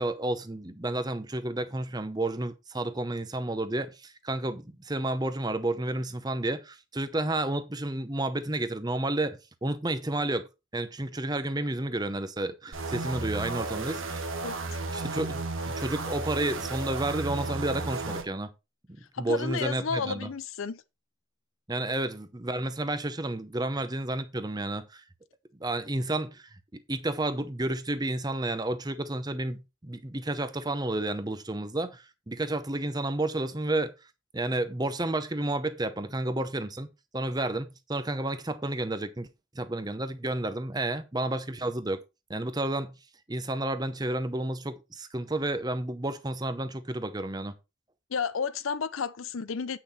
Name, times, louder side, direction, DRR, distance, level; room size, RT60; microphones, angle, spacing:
voice 1, 0.0-14.2 14.9-18.5 19.2-20.3 21.7-25.0 25.6-26.4 26.7-33.9 34.3-36.9 37.1-39.3 39.5-42.0 42.3-43.0 43.3-47.5, right 2 dB, 20° right, 0.8 m, -31 dB
sound 1, 12.7-18.3, right 3 dB, 75° right, 1.4 m, -33 dB
voice 2, 14.4-14.8 19.1-20.8 48.1-49.8, left 5 dB, 75° left, 0.6 m, -32 dB
8.5 x 5.9 x 4.3 m
head